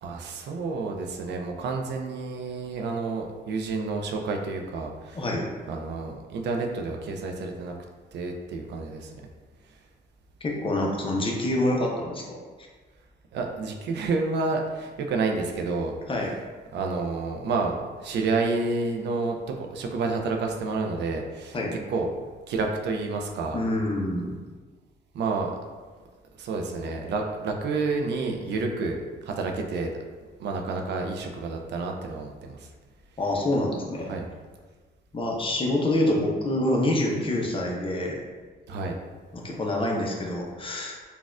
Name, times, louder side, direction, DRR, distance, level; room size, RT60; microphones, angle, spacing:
voice 1, 0.0-5.2 5.7-7.7 8.1-9.1 13.3-16.0 16.7-21.6 21.9-22.1 22.5-23.6 25.1-25.6 26.3-29.9 30.4-32.7 34.1-34.3 38.7-39.0, right 3 dB, 70° right, 2 dB, 0.4 m, -29 dB
voice 2, 5.1-5.5 10.4-12.4 16.1-16.3 21.5-21.7 23.5-24.4 33.2-34.1 35.1-38.2 39.3-41.0, left 1 dB, 30° left, -1 dB, 0.6 m, -26 dB
4.0 x 2.3 x 2.4 m, 1.4 s
cardioid pair, 95°, 18 cm